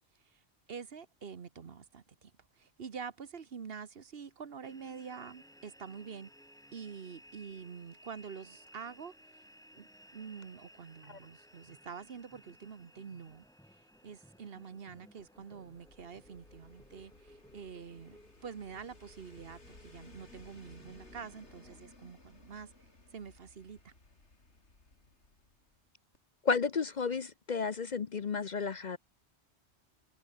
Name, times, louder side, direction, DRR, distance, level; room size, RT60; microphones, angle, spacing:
voice 1, 0.7-2.3 2.6-6.3 6.7-9.1 9.7-9.9 10.1-13.4 14.0-22.7 23.1-23.9, right 6 dB, 60° right, 1.3 m, -46 dB
sound 1, 4.6-21.8, equal, 5° left, 7.0 m, -59 dB
sound 2, 15.5-25.9 26.1-26.2, left 2 dB, 80° left, 4.3 m, -59 dB
voice 2, 26.4-29.0, left 5 dB, 45° left, 0.8 m, -32 dB
omnidirectional pair, 1.1 m